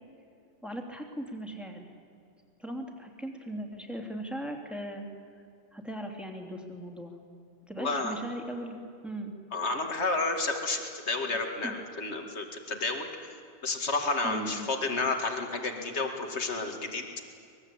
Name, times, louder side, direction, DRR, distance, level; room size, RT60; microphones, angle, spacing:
voice 1, 0.6-1.9 2.6-5.1 5.7-7.1 7.7-9.3 11.6-11.7 14.2-14.7, right 1 dB, ahead, 2 dB, 3.0 m, -38 dB
voice 2, 7.8-8.2 9.5-13.3 13.6-17.0, left 3 dB, 70° left, 4 dB, 2.5 m, -31 dB
24.5 x 21.0 x 8.6 m, 2.5 s
omnidirectional pair, 1.2 m